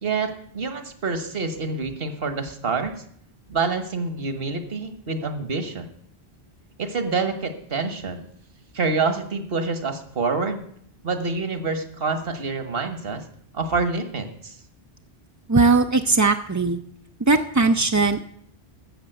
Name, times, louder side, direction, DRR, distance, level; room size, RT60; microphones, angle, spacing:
voice 1, 0.0-2.9 3.5-5.9 6.8-8.2 8.7-10.6 11.0-13.2 13.5-14.6, right 4 dB, 65° right, 9 dB, 1.6 m, -27 dB
voice 2, 15.5-16.8 17.2-18.2, right 3 dB, 30° right, 6 dB, 0.3 m, -19 dB
13.5 x 7.4 x 7.9 m, 0.65 s
omnidirectional pair, 1.0 m